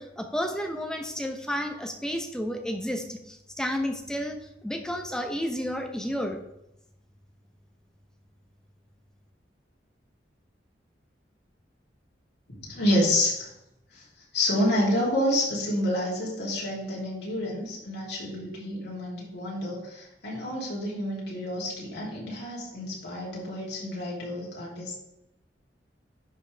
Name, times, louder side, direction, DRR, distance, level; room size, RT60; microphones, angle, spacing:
voice 1, 0.0-4.4 4.6-6.4, equal, 5° left, 4 dB, 0.8 m, -31 dB
voice 2, 12.5-13.5 13.9-14.0 14.3-24.9, left 1 dB, 65° left, -4 dB, 3.1 m, -28 dB
10.5 x 5.4 x 3.4 m, 0.86 s
head